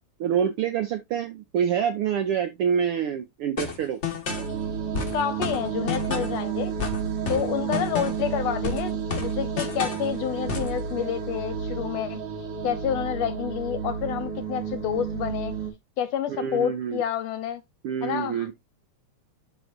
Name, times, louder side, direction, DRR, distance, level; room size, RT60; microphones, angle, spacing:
voice 1, 0.2-4.0 16.3-17.0 17.8-18.5, right 8 dB, 80° right, 1.3 m, -26 dB
sound 1, 3.6-4.5 4.9-6.4 6.8-8.3 8.6-10.1 10.5-10.8, left 5 dB, 45° left, 0.8 m, -31 dB
sound 2, 4.3-15.7, right 7 dB, 55° right, 2.4 m, -31 dB
voice 2, 5.1-6.8 7.3-12.2 12.6-15.5 16.0-17.6 18.0-18.5, left 9 dB, 75° left, 1.8 m, -29 dB
12.0 x 4.7 x 2.5 m
omnidirectional pair, 3.3 m